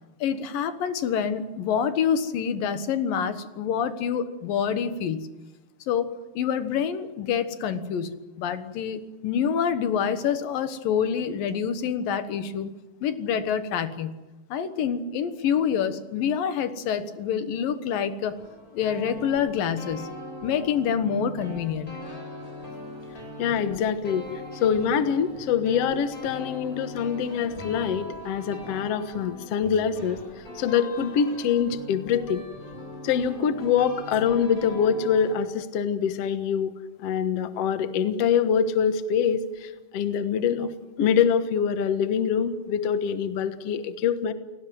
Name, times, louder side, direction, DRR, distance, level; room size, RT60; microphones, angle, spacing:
voice 1, 0.2-5.3 5.9-6.1 6.4-12.7 13.0-14.1 14.5-18.4 18.7-20.1 20.4-22.0, left 7 dB, 80° left, 10 dB, 3.0 m, -27 dB
sound 1, 18.3-35.3, left 2 dB, 20° left, 7.8 m, -40 dB
voice 2, 23.4-24.3 24.5-30.2 30.6-32.4 33.0-40.7 41.0-44.3, left 7 dB, 55° left, 10 dB, 2.0 m, -24 dB
29.5 x 18.0 x 7.8 m, 1.1 s
omnidirectional pair, 4.0 m